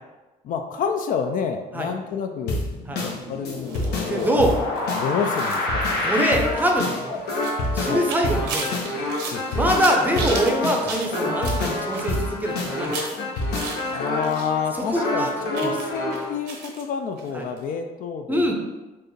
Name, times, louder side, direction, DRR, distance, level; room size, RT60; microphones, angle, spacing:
voice 1, 0.4-2.6 3.0-4.4 4.9-5.8 7.1-7.2 7.9-8.0 9.3-9.4 13.1-13.4 13.9-18.5, left 6 dB, 55° left, 6 dB, 0.4 m, -29 dB
sound 1, 2.5-16.3, left 2 dB, 75° left, 1.0 m, -27 dB
sound 2, 3.6-14.5 14.7-16.8 17.2-17.3 17.6-17.7, right 4 dB, 85° right, 0.8 m, -36 dB
voice 2, 4.1-4.5 6.0-7.2 7.7-8.7 9.5-12.9 14.9-15.3 15.6-15.7 17.3-17.4 18.3-18.5, right 1 dB, 10° right, 1 dB, 0.6 m, -23 dB
4.5 x 2.5 x 3.1 m, 1.1 s
cardioid pair, 110°, 17 cm